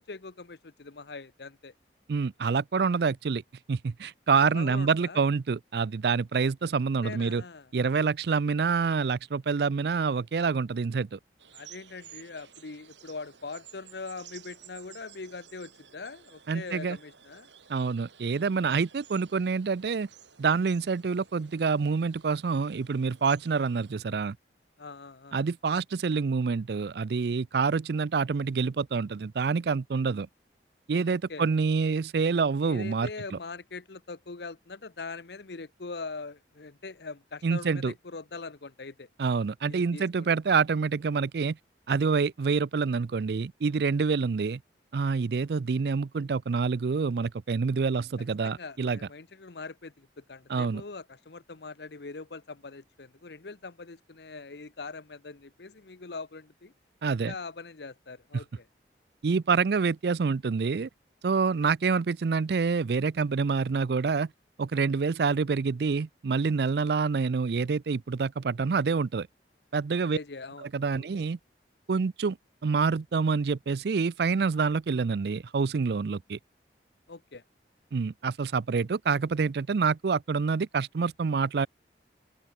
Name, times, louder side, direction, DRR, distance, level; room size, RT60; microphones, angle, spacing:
voice 1, 0.0-1.7 4.5-5.2 6.3-6.5 7.0-7.7 11.5-17.5 24.8-25.4 31.1-31.5 32.6-39.1 39.7-40.3 48.4-56.7 57.3-58.6 70.0-71.0 77.1-77.4, left 3 dB, 70° left, 0.9 m, -42 dB
voice 2, 2.1-3.4 3.7-7.4 7.7-11.2 16.5-17.0 17.7-20.1 20.4-24.4 25.3-30.3 30.9-33.4 37.4-37.9 39.2-41.6 41.9-44.6 44.9-49.0 50.5-50.8 57.0-57.3 59.2-60.9 61.2-64.3 64.6-69.3 69.7-70.2 70.6-71.4 71.9-72.4 72.6-76.4 77.9-81.7, right 5 dB, 65° right, 0.4 m, -27 dB
sound 1, 11.4-23.9, right 9 dB, 90° right, 4.5 m, -54 dB
open air
head